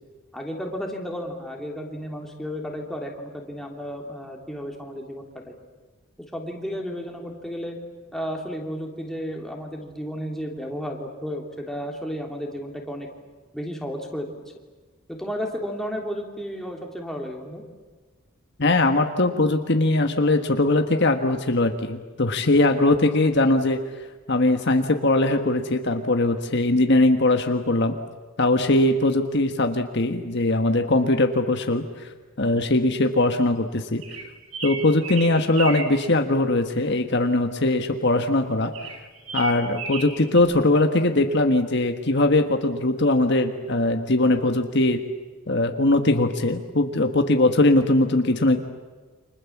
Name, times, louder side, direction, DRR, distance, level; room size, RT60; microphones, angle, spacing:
voice 1, 0.3-5.6 6.3-7.8 8.1-13.1 13.5-14.4 15.1-17.6, equal, ahead, 0 dB, 3.1 m, -33 dB
voice 2, 18.6-23.8 24.3-27.9 28.4-31.8 32.4-34.0 34.6-38.7 39.3-45.0 45.5-48.6, left 2 dB, 55° left, 5 dB, 1.6 m, -21 dB
sound 1, 34.0-35.9 38.7-40.4, right 5 dB, 85° right, 4.9 m, -33 dB
29.0 x 26.5 x 7.3 m, 1.3 s
head